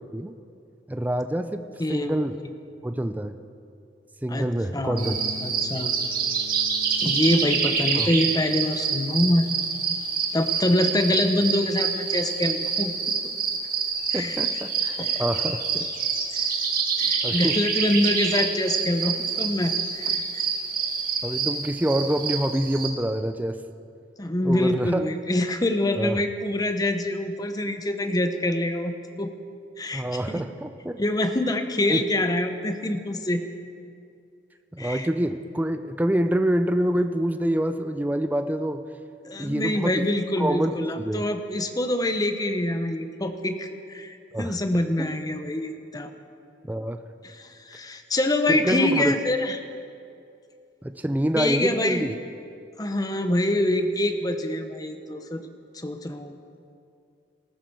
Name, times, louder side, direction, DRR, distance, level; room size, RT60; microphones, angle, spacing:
voice 1, 0.9-1.6 1.9-2.4 2.8-3.4 4.2-5.2 8.0-8.1 14.1-15.9 17.2-17.6 21.2-23.6 24.4-25.0 26.0-26.2 29.9-31.0 31.9-32.0 34.7-38.8 39.4-40.0 40.4-41.2 44.3-44.5 45.0-45.1 46.7-47.0 48.5-49.2 50.8-52.1, right 1 dB, 10° right, 8 dB, 0.4 m, -26 dB
voice 2, 1.8-2.2 4.3-5.1 5.4-5.9 7.0-9.5 10.3-12.9 14.1-14.4 15.0-15.2 16.3-16.5 17.0-20.4 24.2-29.3 29.8-30.4 31.0-33.4 34.8-35.1 39.2-46.1 47.2-49.6 51.3-52.0 52.8-55.4 55.7-56.4, left 1 dB, 20° left, 7 dB, 0.8 m, -25 dB
sound 1, 4.9-13.4, equal, 50° left, 1.8 m, -46 dB
sound 2, 5.0-22.9, right 5 dB, 50° right, 1.9 m, -27 dB
19.0 x 14.0 x 4.7 m, 2.5 s
head